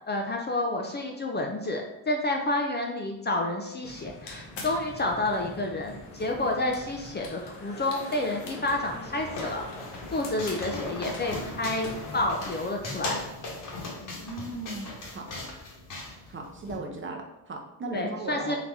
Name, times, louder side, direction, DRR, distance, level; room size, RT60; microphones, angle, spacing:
voice 1, 0.1-9.7 10.1-11.9 12.1-13.2 17.9-18.6, left 2 dB, 25° left, 2 dB, 0.4 m, -29 dB
sound 1, 3.8-12.3, left 2 dB, 85° left, 1.0 m, -42 dB
sound 2, 8.6-16.8, left 2 dB, 50° left, 1.2 m, -38 dB
voice 2, 14.2-15.6 16.3-18.6, right 3 dB, 30° right, 1 dB, 0.6 m, -37 dB
4.0 x 2.9 x 3.5 m, 0.91 s
cardioid pair, 115°, 41 cm